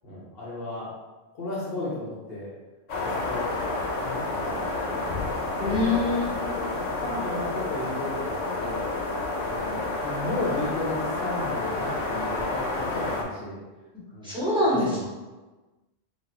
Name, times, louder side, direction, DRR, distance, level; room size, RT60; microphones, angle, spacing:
voice 1, 0.0-1.0 1.3-2.5 3.0-3.5 4.0-5.3 5.6-6.0 7.0-8.9 9.4-13.6 14.1-14.4 14.7-15.0, left 2 dB, 55° left, -7 dB, 1.0 m, -34 dB
sound 1, 2.9-13.2, left 2 dB, 75° left, 1.1 m, -30 dB
voice 2, 5.6-6.5 14.2-15.1, left 2 dB, 5° right, -9 dB, 1.4 m, -25 dB
3.4 x 2.6 x 4.2 m, 1.2 s
omnidirectional pair, 1.3 m